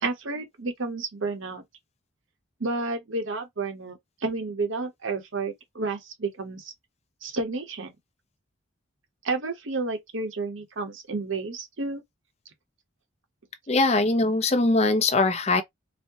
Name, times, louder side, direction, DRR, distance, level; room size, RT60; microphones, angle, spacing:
voice 1, 0.0-1.6 2.6-6.7 7.2-7.9 9.2-12.0, right 3 dB, 70° right, 1.0 m, -31 dB
voice 2, 13.7-15.6, left 2 dB, 30° left, 0.6 m, -21 dB
4.2 x 2.2 x 2.8 m
head